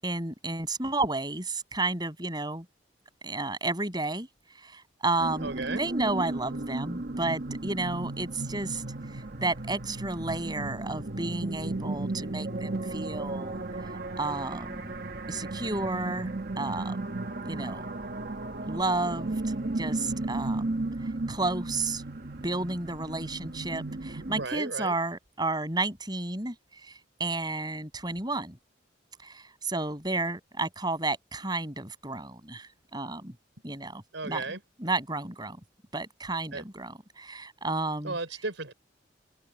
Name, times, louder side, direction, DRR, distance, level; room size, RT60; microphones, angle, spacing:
voice 1, 0.0-2.7 3.2-4.3 4.6-8.8 9.1-13.6 14.2-14.9 15.3-17.0 17.5-17.9 18.6-20.8 21.3-22.0 22.4-26.6 26.8-28.6 29.2-33.3 33.6-34.4 34.8-35.6 35.9-38.2, right 2 dB, 20° right, 7.0 m, -32 dB
sound 1, 5.2-24.5, right 2 dB, 55° right, 1.4 m, -35 dB
voice 2, 5.4-5.8 24.4-24.9 34.1-34.6 36.5-36.6 38.0-38.7, right 3 dB, 85° right, 4.5 m, -34 dB
open air
head